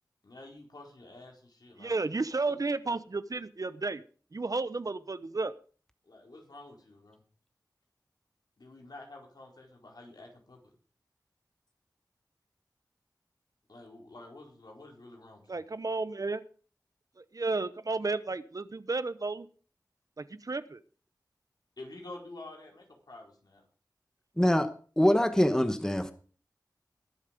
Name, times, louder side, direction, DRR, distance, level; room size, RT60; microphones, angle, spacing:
voice 1, 0.2-2.0 2.4-2.5 2.9-3.0 6.0-7.2 8.6-10.6 13.7-15.6 21.8-23.6, left 2 dB, 70° left, 0 dB, 4.4 m, -49 dB
voice 2, 1.8-4.0 4.3-5.5 15.5-16.4 17.2-19.5 20.2-20.8, right 3 dB, 55° right, 14 dB, 0.8 m, -32 dB
voice 3, 24.4-26.1, left 1 dB, 10° left, 10 dB, 1.1 m, -25 dB
20.5 x 7.4 x 5.1 m, 0.41 s
wide cardioid pair, 65°, 7 cm